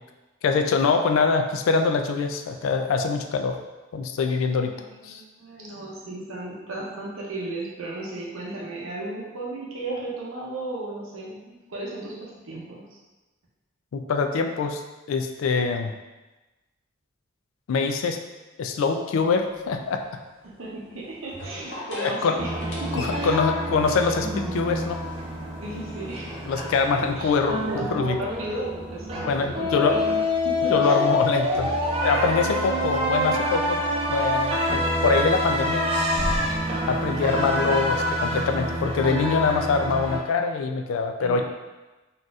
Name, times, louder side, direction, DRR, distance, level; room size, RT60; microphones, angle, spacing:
voice 1, 0.4-3.6 3.9-4.7 5.0-5.2 13.9-14.8 15.1-15.9 17.7-18.2 18.6-20.0 22.0-22.4 22.9-25.0 26.5-28.2 29.2-30.0 30.7-31.7 32.0-35.9 36.9-41.4, left 4 dB, 75° left, 5 dB, 0.3 m, -24 dB
voice 2, 4.5-13.0 14.4-14.5 20.4-22.5 22.8-23.4 25.6-26.4 26.9-31.0 36.9-37.8 41.2-41.4, right 2 dB, 80° right, -4 dB, 0.7 m, -35 dB
sound 1, 19.4-27.7, left 1 dB, 55° left, 0.8 m, -43 dB
sound 2, 22.4-40.2, left 1 dB, 25° right, 0.4 m, -27 dB
3.9 x 2.5 x 2.4 m, 1.1 s
head